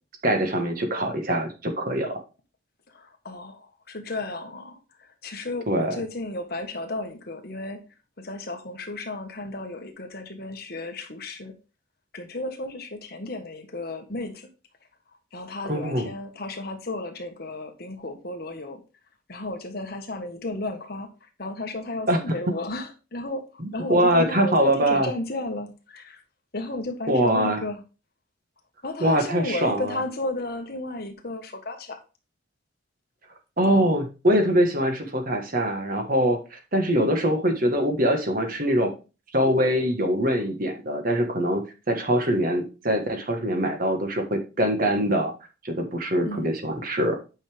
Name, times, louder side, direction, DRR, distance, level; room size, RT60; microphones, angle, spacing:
voice 1, 0.2-2.2 5.7-6.0 15.7-16.1 22.1-22.2 23.6-25.1 27.1-27.6 29.0-30.0 33.6-38.9 39.3-45.3 45.6-47.2, equal, 45° right, 5 dB, 1.5 m, -23 dB
voice 2, 2.9-7.8 8.2-11.5 12.1-14.5 15.3-18.8 19.3-26.2 26.5-27.8 28.8-32.0 46.2-46.5, left 2 dB, 50° left, 5 dB, 1.4 m, -34 dB
8.9 x 5.7 x 3.4 m, 0.32 s
head